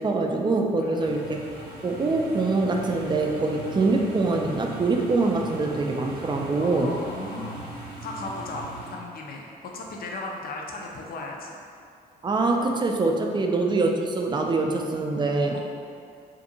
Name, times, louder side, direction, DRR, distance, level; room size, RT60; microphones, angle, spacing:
voice 1, 0.0-1.4 1.8-6.9 12.2-15.6, right 3 dB, 25° right, 2 dB, 0.4 m, -24 dB
voice 2, 0.8-1.3 6.6-11.6 13.2-13.4 15.4-15.6, left 2 dB, 50° left, 0 dB, 0.5 m, -37 dB
sound 1, 1.0-8.9, right 2 dB, 55° right, 0.7 m, -39 dB
2.5 x 2.5 x 2.7 m, 2.4 s
hypercardioid pair, 50°, 19 cm